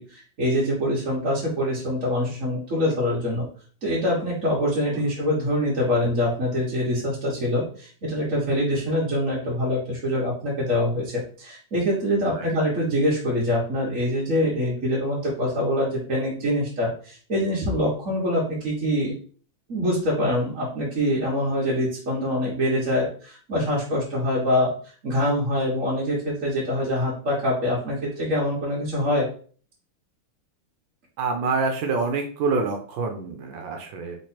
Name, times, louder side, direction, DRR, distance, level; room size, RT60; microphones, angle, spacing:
voice 1, 0.0-3.5 3.8-19.2 19.7-24.7 25.0-29.3, left 1 dB, 45° right, -6 dB, 1.5 m, -24 dB
voice 2, 31.2-34.2, right 4 dB, 75° right, 4 dB, 1.4 m, -26 dB
3.7 x 3.2 x 4.3 m, 0.43 s
omnidirectional pair, 2.2 m